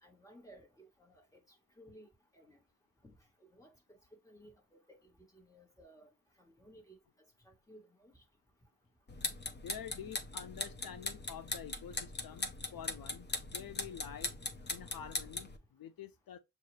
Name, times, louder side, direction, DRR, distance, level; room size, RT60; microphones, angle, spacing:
voice 1, 0.0-2.6 3.0-3.1 3.4-3.7 4.2-6.1 6.4-7.0 7.4-8.1, right 1 dB, 10° left, 1.5 m, -59 dB
sound 1, 9.1-15.6, left 2 dB, 30° left, 0.7 m, -40 dB
voice 2, 9.6-14.3 14.7-16.4, left 9 dB, 85° left, 0.5 m, -48 dB
6.6 x 2.4 x 3.2 m
wide cardioid pair, 100°, 34 cm